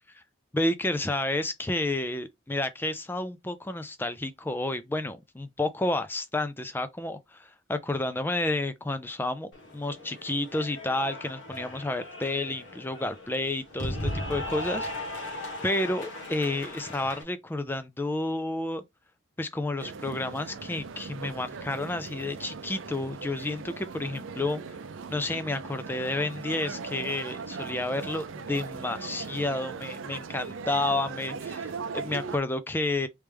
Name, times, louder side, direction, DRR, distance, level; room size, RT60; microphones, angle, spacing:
voice 1, 0.5-14.9 15.2-15.3 15.6-18.8 19.4-24.6 25.1-33.1, left 2 dB, 10° left, 0.3 m, -30 dB
Cheering / Applause, 9.5-17.2, left 1 dB, 70° left, 1.2 m, -37 dB
sound 1, 19.8-32.4, right 5 dB, 80° right, 0.5 m, -39 dB
3.3 x 3.1 x 3.3 m
head